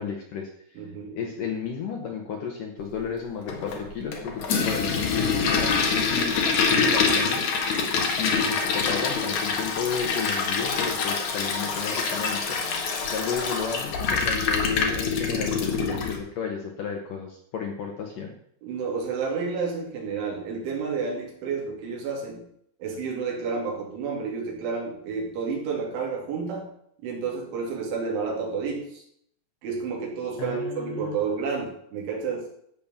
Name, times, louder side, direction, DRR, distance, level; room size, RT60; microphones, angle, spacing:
voice 1, 0.0-12.6 13.0-18.4 30.4-31.2, left 6 dB, 70° left, 2 dB, 2.0 m, -33 dB
voice 2, 0.8-1.2 18.6-22.4 22.8-26.7 27.0-29.0 29.6-32.5, right 5 dB, 75° right, -1 dB, 5.2 m, -30 dB
Toilet flush, 3.5-16.2, left 5 dB, 55° left, 2.3 m, -25 dB
14.5 x 5.3 x 7.1 m, 0.68 s
omnidirectional pair, 5.6 m